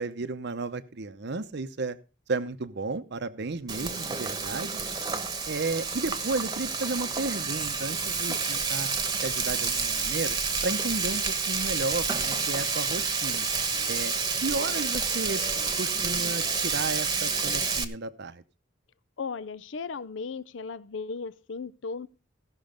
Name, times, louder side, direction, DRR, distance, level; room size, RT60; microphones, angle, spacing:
voice 1, 0.0-2.0 2.3-4.8 5.5-8.9 9.2-10.4 10.6-13.5 13.9-14.1 14.4-15.4 15.8-18.4, right 3 dB, 60° right, 0.8 m, -33 dB
Frying (food), 3.7-17.8, right 5 dB, 20° right, 1.1 m, -29 dB
voice 2, 19.2-22.1, left 4 dB, 70° left, 0.5 m, -36 dB
16.0 x 6.4 x 5.1 m
head